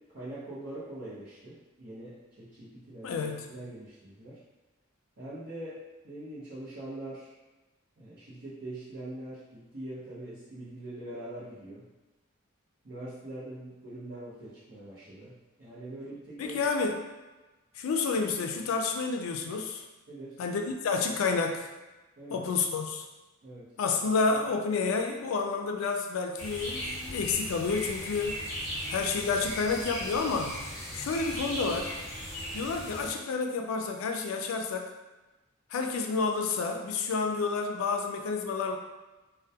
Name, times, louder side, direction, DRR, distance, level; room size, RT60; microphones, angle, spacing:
voice 1, 0.0-4.4 5.2-7.3 8.0-11.9 12.8-16.6 20.1-20.4 22.2-22.4 23.4-23.7, right 1 dB, 55° right, -11 dB, 0.7 m, -43 dB
voice 2, 3.0-3.4 16.4-17.0 17.8-19.8 20.4-21.7 22.3-23.1 23.8-28.4 28.9-30.5 30.9-31.9 32.5-34.9 35.7-38.8, left 4 dB, 85° left, 3 dB, 0.3 m, -29 dB
sound 1, 26.4-33.1, equal, 15° left, 0.8 m, -37 dB
2.2 x 2.2 x 2.6 m, 1.1 s
head